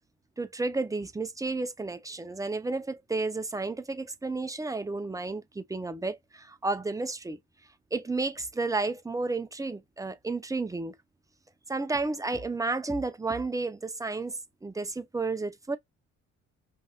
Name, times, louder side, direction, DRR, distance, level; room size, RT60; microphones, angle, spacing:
voice 1, 0.4-7.4 7.9-10.9 11.7-15.8, right 3 dB, 10° right, 0.7 m, -32 dB
5.3 x 2.7 x 2.3 m
cardioid pair, 90°, 30 cm